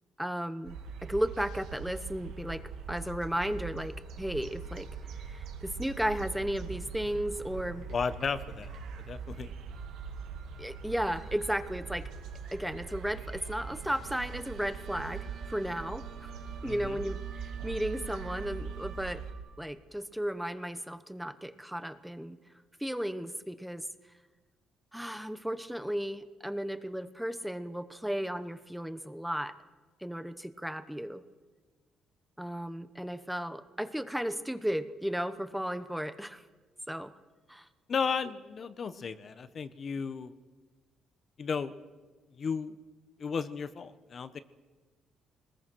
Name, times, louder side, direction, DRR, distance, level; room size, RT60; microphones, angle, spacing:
voice 1, 0.2-4.9 5.2-7.8 10.6-12.1 12.5-16.3 16.6-19.2 19.6-22.4 22.8-23.8 24.9-29.5 30.0-31.2 32.4-36.4 36.9-37.1 37.5-37.7, equal, 5° right, 11 dB, 1.0 m, -34 dB
sound 1, 0.6-19.3, right 6 dB, 85° right, 2.2 m, -42 dB
sound 2, 4.2-19.6, right 6 dB, 60° right, 3.6 m, -53 dB
voice 2, 7.9-8.8 9.1-9.5 16.6-17.0 37.9-40.3 41.4-41.7 42.4-42.8 43.2-44.4, left 5 dB, 45° left, 12 dB, 1.0 m, -34 dB
22.0 x 20.5 x 6.3 m, 1.3 s
cardioid pair, 105°, 0 cm